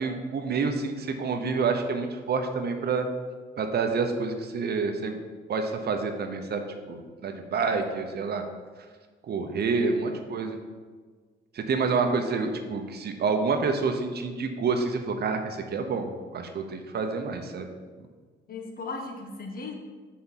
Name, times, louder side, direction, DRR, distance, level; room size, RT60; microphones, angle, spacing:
voice 1, 0.0-3.1 3.6-5.2 5.5-8.4 9.3-10.6 11.5-17.7, right 4 dB, 55° right, 5 dB, 0.9 m, -28 dB
voice 2, 9.8-10.2 18.5-19.7, left 3 dB, 50° left, 2 dB, 1.2 m, -37 dB
5.9 x 4.2 x 5.9 m, 1.5 s
cardioid pair, 90°, 20 cm